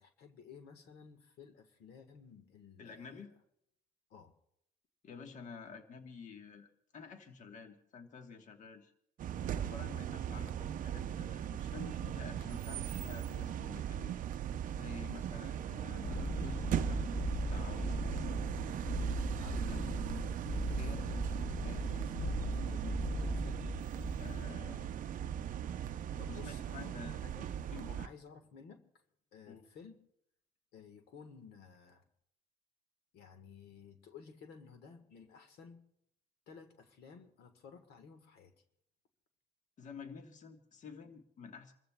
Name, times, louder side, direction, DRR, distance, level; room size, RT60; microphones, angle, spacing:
voice 1, 0.0-3.2 4.1-4.3 19.4-21.1 21.9-23.6 24.5-24.9 25.2-25.4 26.2-27.5 27.9-28.8 29.3-30.0 30.7-32.0 33.1-35.8 36.5-38.5, left 6 dB, 70° left, 7 dB, 1.4 m, -55 dB
voice 2, 2.8-3.3 5.0-8.9 9.3-14.1 14.7-18.3 19.6-19.8 20.8-21.1 21.5-22.0 24.2-24.9 26.3-27.2 27.7-28.0 29.5-29.7 39.8-41.7, left 5 dB, 45° left, 5 dB, 1.3 m, -50 dB
sound 1, 9.2-28.1, right 10 dB, 50° right, 0.6 m, -39 dB
Cat Purring, 16.0-24.5, right 1 dB, 20° left, 0.9 m, -37 dB
29.0 x 14.5 x 2.3 m, 0.76 s
cardioid pair, 110°, 17 cm